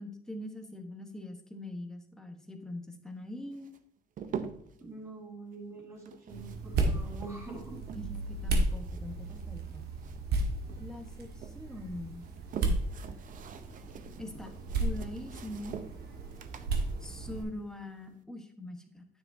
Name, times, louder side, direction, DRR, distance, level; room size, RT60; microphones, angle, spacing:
voice 1, 0.0-3.7 7.9-8.1 8.4-9.9 10.8-12.2 12.6-12.9 14.2-14.5 14.8-15.8 17.0-19.1, left 1 dB, 5° left, 4 dB, 1.3 m, -42 dB
sound 1, 3.5-4.8 6.0-8.3 8.6-10.4 10.7-11.6 12.1-18.2, right 7 dB, 50° right, 0.7 m, -45 dB
voice 2, 4.8-7.8, right 3 dB, 15° right, -2 dB, 3.8 m, -45 dB
sound 2, 6.3-17.4, right 2 dB, 70° right, 1.7 m, -34 dB
9.7 x 7.1 x 2.7 m, 0.67 s
cardioid pair, 110°, 17 cm